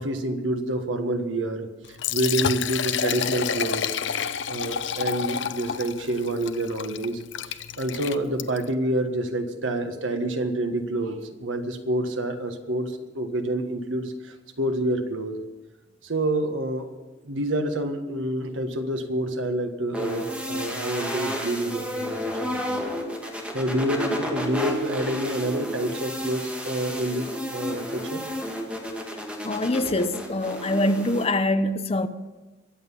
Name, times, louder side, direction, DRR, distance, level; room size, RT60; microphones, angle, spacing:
voice 1, 0.0-1.7 2.1-3.9 4.5-7.2 7.5-15.4 16.0-16.9 17.2-22.8 23.5-28.2, right 1 dB, 75° right, 1.6 m, -28 dB
Liquid, 1.8-8.7, left 7 dB, 65° left, 0.7 m, -29 dB
sound 1, 19.9-31.2, equal, 5° right, 2.1 m, -32 dB
voice 2, 29.4-32.1, left 1 dB, 30° left, 0.8 m, -24 dB
23.0 x 8.0 x 5.6 m
head